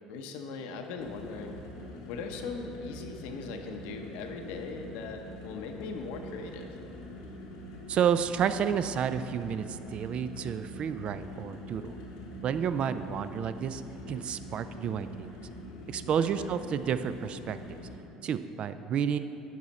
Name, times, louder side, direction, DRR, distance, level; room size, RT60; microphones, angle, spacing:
voice 1, 0.1-1.6 2.1-6.8 16.2-16.5, left 4 dB, 75° left, 4 dB, 0.7 m, -39 dB
sound 1, 1.0-18.0, equal, 90° left, 1.0 m, -44 dB
voice 2, 7.9-11.9 12.4-13.8 14.1-15.3 15.9-17.8 18.2-19.2, right 8 dB, 50° right, 12 dB, 0.3 m, -30 dB
10.5 x 4.2 x 4.1 m, 2.9 s
hypercardioid pair, 75°, 2 cm